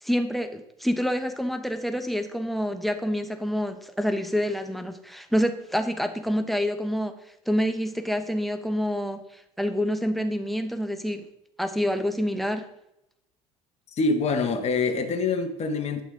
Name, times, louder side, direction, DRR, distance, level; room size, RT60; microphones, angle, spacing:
voice 1, 0.0-7.1 7.5-11.3 11.6-12.7, equal, ahead, 8 dB, 1.0 m, -27 dB
voice 2, 13.9-16.0, left 4 dB, 40° left, 5 dB, 1.1 m, -25 dB
10.0 x 6.3 x 3.9 m, 0.83 s
hypercardioid pair, 65°, 17 cm